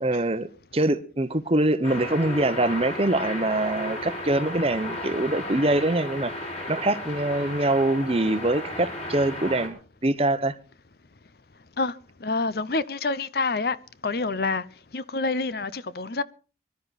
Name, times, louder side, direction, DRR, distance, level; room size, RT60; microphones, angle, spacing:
voice 1, 0.0-10.5, right 2 dB, 30° right, 0.9 m, -24 dB
sound 1, 1.8-9.7, left 1 dB, 35° left, 4.5 m, -34 dB
voice 2, 12.2-13.8 14.0-14.7 14.9-16.2, left 3 dB, 55° left, 0.7 m, -27 dB
23.5 x 12.0 x 4.1 m
head